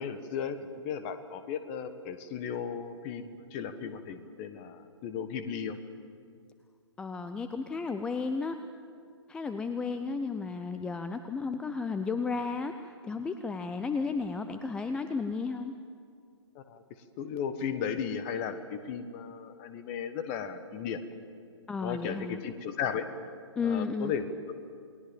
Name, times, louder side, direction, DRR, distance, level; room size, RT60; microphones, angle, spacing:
voice 1, 0.0-5.8 16.5-16.8 17.2-21.0 21.8-23.1 23.6-24.5, left 7 dB, 25° left, 10 dB, 1.5 m, -35 dB
voice 2, 7.0-8.6 9.3-15.7 21.7-22.4 23.6-24.1, left 4 dB, 5° left, 9 dB, 0.5 m, -33 dB
29.0 x 20.0 x 7.5 m, 2.3 s
figure-of-eight pair, 130°, 15 cm